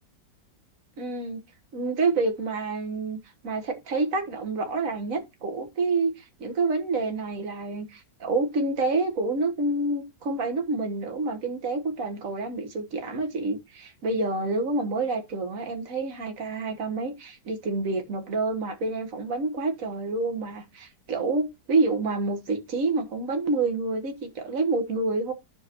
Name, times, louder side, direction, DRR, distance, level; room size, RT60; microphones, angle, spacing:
voice 1, 1.0-1.4 1.7-3.2 3.4-25.3, right 3 dB, 50° right, 1.7 m, -28 dB
13.0 x 4.8 x 3.0 m
omnidirectional pair, 1.9 m